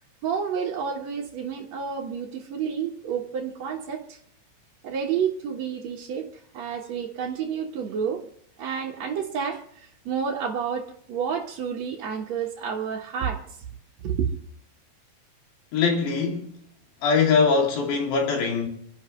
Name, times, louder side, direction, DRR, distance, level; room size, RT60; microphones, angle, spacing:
voice 1, 0.2-4.2 4.8-8.2 8.6-13.4 14.0-14.3, right 7 dB, 60° right, 1.9 m, -30 dB
voice 2, 15.7-16.6 17.0-18.7, left 5 dB, 80° left, 4.9 m, -22 dB
28.5 x 12.0 x 3.2 m
omnidirectional pair, 4.9 m